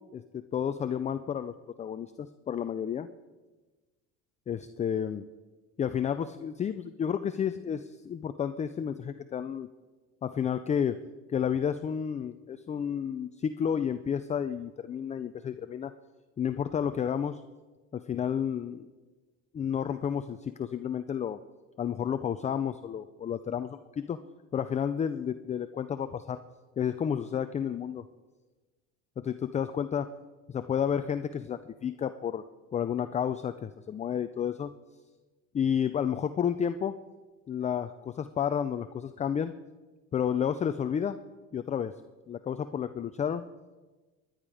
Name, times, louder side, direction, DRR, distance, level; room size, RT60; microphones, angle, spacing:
voice 1, 0.1-1.5 1.8-3.1 4.5-5.2 5.8-9.7 10.2-11.0 11.3-15.9 16.4-17.4 17.9-18.9 19.5-21.4 21.8-23.8 24.1-24.2 24.5-26.4 26.8-28.0 29.2-30.1 30.5-32.4 32.7-34.7 35.5-37.0 37.5-39.5 40.1-41.2 41.5-41.9 42.3-43.4, left 8 dB, 20° left, 10 dB, 0.4 m, -31 dB
21.0 x 10.5 x 4.9 m, 1.3 s
cardioid pair, 115°, 31 cm